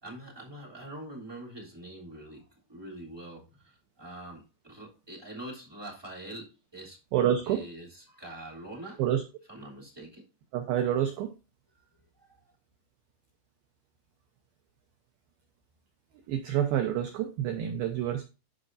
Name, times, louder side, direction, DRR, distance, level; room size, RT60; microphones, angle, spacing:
voice 1, 0.0-7.0 7.4-9.0 9.5-10.2 12.2-12.3, right 1 dB, 5° right, -4 dB, 2.1 m, -44 dB
voice 2, 7.1-7.7 9.0-9.2 10.5-11.3 16.3-18.2, right 10 dB, 85° right, 6 dB, 2.1 m, -28 dB
14.0 x 5.1 x 2.6 m, 0.30 s
omnidirectional pair, 5.4 m